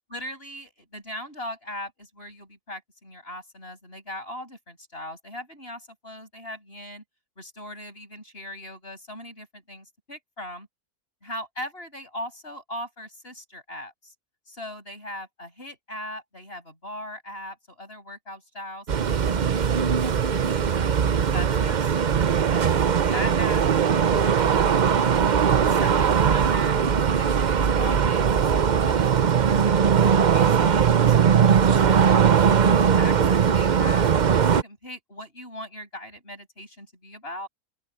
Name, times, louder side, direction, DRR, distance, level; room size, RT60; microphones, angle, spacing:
voice 1, 0.1-7.0 7.4-10.7 11.2-14.1 14.5-20.9 21.3-22.8 23.1-28.2 28.5-29.1 29.5-34.1 34.5-37.5, left 1 dB, 40° left, 8.2 m, -39 dB
sound 1, 18.9-34.6, right 7 dB, 45° right, 0.6 m, -20 dB
open air
omnidirectional pair, 1.6 m